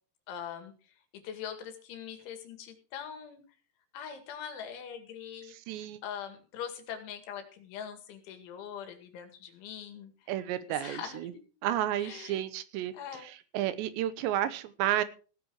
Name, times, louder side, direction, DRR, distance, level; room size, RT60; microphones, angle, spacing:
voice 1, 0.3-0.7 1.2-3.4 3.9-10.3 10.7-11.4 12.0-12.4 12.9-13.3, left 8 dB, 90° left, 7 dB, 4.5 m, -42 dB
voice 2, 5.5-6.0 10.3-11.3 11.6-12.9 13.2-15.0, right 12 dB, 80° right, 14 dB, 3.1 m, -32 dB
17.0 x 9.5 x 4.7 m, 0.37 s
omnidirectional pair, 5.2 m